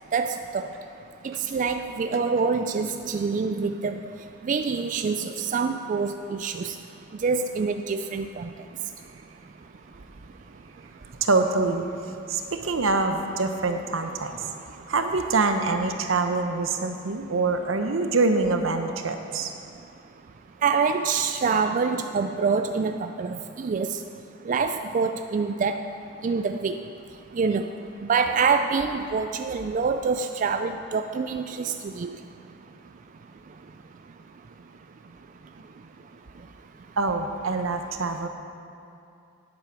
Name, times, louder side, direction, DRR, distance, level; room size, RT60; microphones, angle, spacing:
voice 1, 0.1-0.7 1.2-4.0 4.4-6.7 7.2-8.5 20.6-24.0 24.5-25.8 26.2-26.8 27.4-27.7 28.0-32.1, right 5 dB, 40° right, 7 dB, 0.3 m, -26 dB
voice 2, 11.0-14.5 14.7-19.5 35.5-35.6 37.0-38.3, right 3 dB, 80° right, 6 dB, 0.9 m, -25 dB
10.5 x 8.5 x 6.0 m, 2.6 s
head